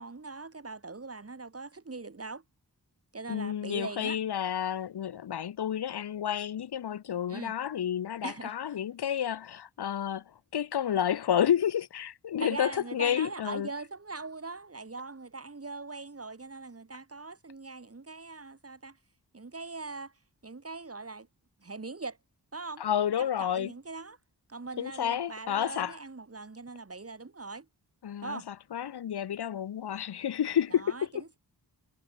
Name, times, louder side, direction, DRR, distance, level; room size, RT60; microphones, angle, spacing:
voice 1, 0.0-2.4 3.1-4.2 7.3-7.5 8.2-8.5 12.4-19.0 19.3-20.1 20.4-21.3 21.6-22.2 22.5-22.8 23.2-24.2 24.5-27.7 28.2-28.5 30.7-31.4, right 3 dB, 35° right, 3.8 m, -41 dB
voice 2, 3.3-13.7 22.8-23.7 24.8-26.0 28.0-31.2, left 9 dB, 80° left, 0.8 m, -30 dB
wide cardioid pair, 95°, 39 cm